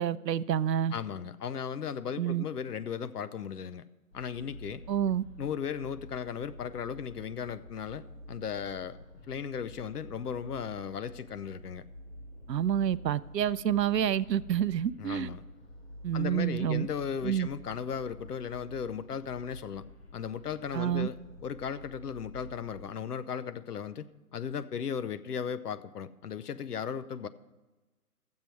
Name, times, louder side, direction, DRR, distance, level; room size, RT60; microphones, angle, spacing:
voice 1, 0.0-0.9 2.2-2.4 4.9-5.2 12.5-15.3 16.0-16.9 17.2-17.5 20.7-21.1, right 10 dB, 85° right, 0.6 m, -28 dB
voice 2, 0.9-3.8 4.1-4.8 5.4-9.0 9.3-11.8 15.0-15.4 16.1-19.8 20.1-21.2 21.4-24.1 24.3-27.3, left 7 dB, 70° left, 0.8 m, -36 dB
sound 1, 4.1-22.8, left 1 dB, 40° left, 1.3 m, -49 dB
14.5 x 7.5 x 4.6 m
hypercardioid pair, 160°, 48 cm